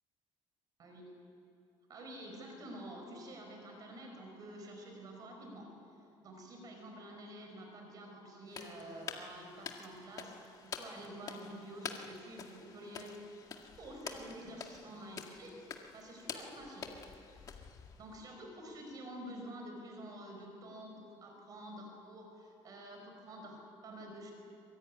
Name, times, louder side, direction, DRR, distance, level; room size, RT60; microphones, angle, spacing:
voice 1, 0.8-1.2 1.9-5.7 6.2-13.2 13.8-15.6 15.9-16.9 18.0-24.3, right 1 dB, 40° right, 2 dB, 5.0 m, -49 dB
sound 1, 8.5-18.2, left 6 dB, 35° left, 2.0 m, -48 dB
24.5 x 22.5 x 9.7 m, 2.8 s
cardioid pair, 175°, 10 cm